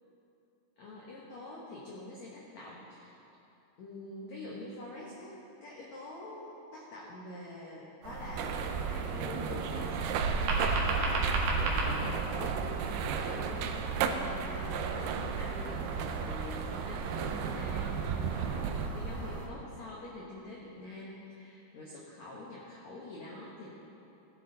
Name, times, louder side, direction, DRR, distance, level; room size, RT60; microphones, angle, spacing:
voice 1, 0.8-3.1 3.8-5.4 5.6-10.9 11.8-12.6 13.0-23.7, left 2 dB, 70° left, -5 dB, 1.7 m, -45 dB
sound 1, 8.0-19.5, right 3 dB, 55° right, 2.5 m, -35 dB
sound 2, 8.4-18.9, right 7 dB, 80° right, 2.4 m, -35 dB
17.0 x 10.0 x 4.0 m, 2.8 s
omnidirectional pair, 5.1 m